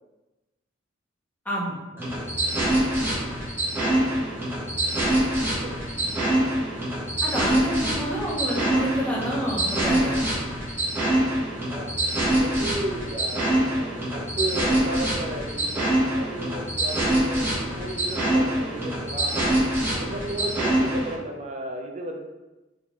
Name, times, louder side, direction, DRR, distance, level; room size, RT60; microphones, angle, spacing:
sound 1, 2.0-21.1, right 1 dB, 10° right, 1.1 m, -25 dB
voice 1, 7.2-10.3, equal, 10° left, -7 dB, 1.2 m, -28 dB
voice 2, 11.7-13.5 13.8-19.6 19.9-22.2, right 1 dB, 35° right, 2 dB, 0.6 m, -34 dB
4.0 x 3.7 x 3.0 m, 1.1 s
head